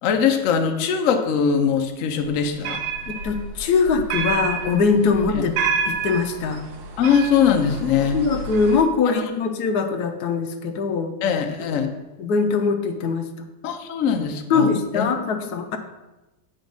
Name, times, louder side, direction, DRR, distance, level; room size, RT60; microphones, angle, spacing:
voice 1, 0.0-2.8 5.3-5.4 7.0-8.2 9.0-9.2 11.2-11.9 13.6-15.1, left 7 dB, 90° left, 6 dB, 0.7 m, -21 dB
sound 1, 2.3-8.8, right 5 dB, 70° right, 1.5 m, -29 dB
voice 2, 3.1-6.6 8.1-11.1 11.7-11.8 12.2-13.3 14.5-15.8, left 5 dB, 70° left, 6 dB, 1.0 m, -22 dB
7.7 x 4.1 x 5.2 m, 1.0 s
omnidirectional pair, 2.2 m